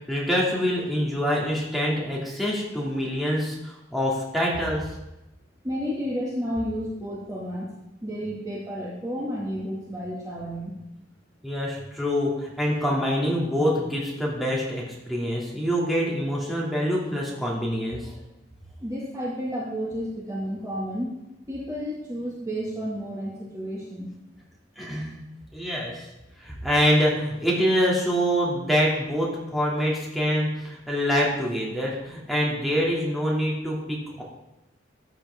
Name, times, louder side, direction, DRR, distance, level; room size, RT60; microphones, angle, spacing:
voice 1, 0.0-4.9 11.4-18.1 24.8-25.2 25.5-26.1 26.4-34.2, equal, ahead, -5 dB, 2.8 m, -25 dB
voice 2, 5.6-7.7 8.0-10.8 18.8-21.2 21.5-24.1, equal, 20° right, -5 dB, 2.3 m, -31 dB
14.0 x 8.7 x 3.8 m, 0.94 s
head